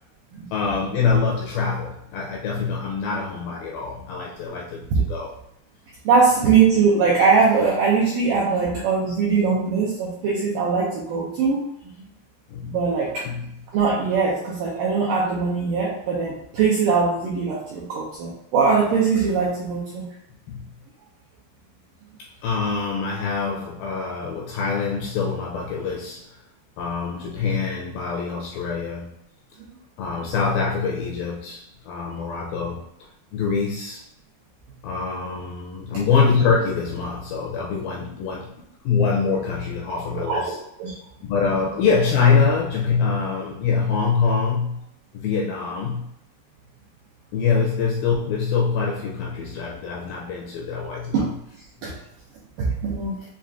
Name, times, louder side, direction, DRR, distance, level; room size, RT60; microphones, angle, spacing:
voice 1, 0.5-5.3 12.5-12.8 13.3-13.5 20.5-20.7 22.4-26.3 26.8-29.1 30.0-32.9 33.3-34.0 34.8-38.5 38.8-40.6 41.2-44.8 45.1-46.1 47.3-51.3, left 5 dB, 85° left, -2 dB, 2.1 m, -24 dB
voice 2, 6.1-11.6 12.6-13.3 13.7-20.1 40.1-40.4 40.8-40.9 51.1-51.2 51.8-51.9 52.6-53.2, right 5 dB, 90° right, -5 dB, 1.8 m, -21 dB
6.8 x 2.4 x 2.4 m, 0.79 s
omnidirectional pair, 4.7 m